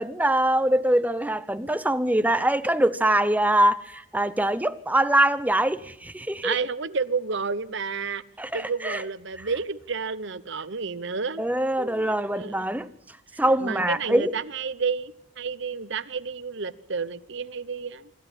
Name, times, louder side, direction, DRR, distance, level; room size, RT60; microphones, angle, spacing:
voice 1, 0.0-6.6 8.4-9.0 11.4-12.9 13.4-14.3, right 1 dB, 5° right, 0.8 m, -23 dB
voice 2, 6.4-8.2 8.5-11.4 11.8-12.7 13.3-18.1, right 5 dB, 55° right, 0.9 m, -31 dB
25.5 x 13.0 x 8.9 m
head